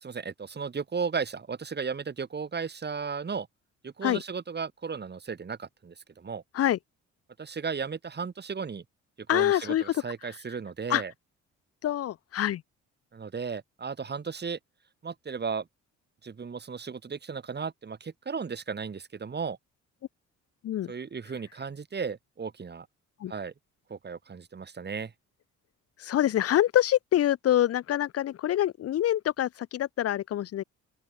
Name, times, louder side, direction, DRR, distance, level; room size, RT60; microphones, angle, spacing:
voice 1, 0.0-3.5 3.8-6.4 7.4-8.8 9.3-11.1 13.1-14.6 15.0-15.7 16.2-19.6 20.9-22.9 23.3-23.5 23.9-25.1, right 5 dB, 35° right, 2.8 m, -35 dB
voice 2, 9.3-9.8 10.9-11.0 11.8-12.6 20.6-20.9 23.2-23.3 26.0-30.6, left 12 dB, 55° left, 0.6 m, -25 dB
open air
cardioid pair, 90°, 30 cm